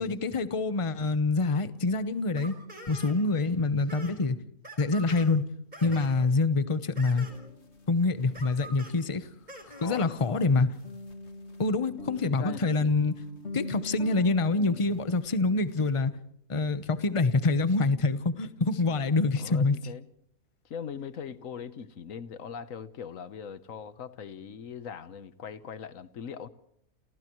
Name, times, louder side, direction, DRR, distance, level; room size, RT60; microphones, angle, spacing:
voice 1, 0.0-2.6 2.9-4.4 4.8-5.5 5.8-7.3 7.9-9.3 9.8-10.7 11.6-13.1 13.5-16.1 16.5-19.8, left 3 dB, 25° left, 0.9 m, -26 dB
sound 1, 2.4-3.4 3.7-4.1 4.6-5.3 5.7-6.3 7.0-7.5 8.3-8.9 9.5-10.1, right 1 dB, 30° right, 4.8 m, -45 dB
sound 2, 7.2-9.8 10.1-15.9, left 2 dB, 45° left, 2.3 m, -44 dB
voice 2, 9.7-10.4 12.2-12.9 14.6-15.0 19.4-20.1 20.6-26.5, left 7 dB, 65° left, 1.4 m, -41 dB
29.5 x 29.0 x 3.1 m
omnidirectional pair, 1.6 m